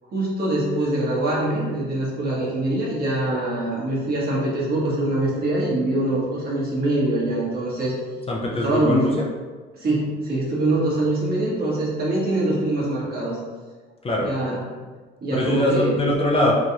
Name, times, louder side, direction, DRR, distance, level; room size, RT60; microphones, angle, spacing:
voice 1, 0.1-7.9 8.6-9.2 9.7-13.4 14.2-14.6 15.2-16.0, right 1 dB, 50° right, -6 dB, 1.2 m, -23 dB
voice 2, 8.3-9.2 14.0-14.3 15.3-16.5, left 1 dB, 30° left, -2 dB, 0.5 m, -22 dB
3.1 x 2.4 x 2.8 m, 1.4 s
cardioid pair, 90°, 20 cm